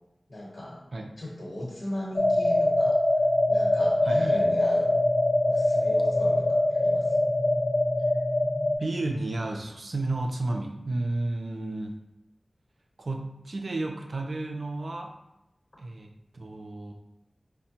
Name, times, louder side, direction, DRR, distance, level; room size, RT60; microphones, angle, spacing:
voice 1, 0.3-0.9 1.2-3.0 3.5-5.0 5.5-7.3, left 1 dB, 65° left, -7 dB, 1.0 m, -37 dB
sound 1, 2.2-8.7, left 1 dB, 35° left, 0.8 m, -23 dB
voice 2, 4.0-4.5 8.8-12.0 13.0-15.1 15.8-16.9, right 2 dB, 70° right, 2 dB, 0.4 m, -32 dB
5.0 x 2.1 x 2.8 m, 0.86 s
wide cardioid pair, 60°, 0 cm